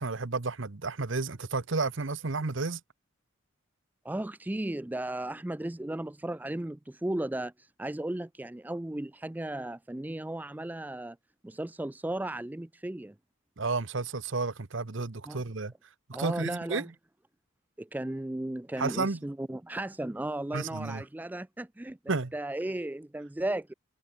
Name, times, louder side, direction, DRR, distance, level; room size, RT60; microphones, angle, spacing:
voice 1, 0.0-2.8 13.6-15.7 16.2-16.9 18.8-19.2 20.5-21.0 22.1-22.3, right 3 dB, 60° right, 1.0 m, -32 dB
voice 2, 4.0-11.2 11.4-13.1 15.3-15.4 16.1-16.8 17.8-23.7, right 1 dB, 10° right, 0.3 m, -35 dB
head